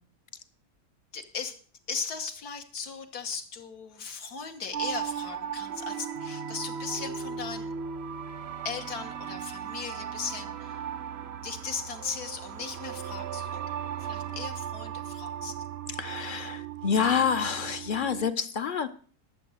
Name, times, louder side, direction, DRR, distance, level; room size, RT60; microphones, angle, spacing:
voice 1, 1.1-1.6 1.9-7.7 8.6-10.8 11.4-13.6 14.0-15.5, left 5 dB, 75° left, 6 dB, 1.8 m, -37 dB
sound 1, 4.7-18.3, right 8 dB, 60° right, 0.7 m, -37 dB
voice 2, 15.9-18.9, left 7 dB, 50° left, 12 dB, 0.6 m, -28 dB
12.0 x 7.0 x 6.4 m, 0.43 s
omnidirectional pair, 1.6 m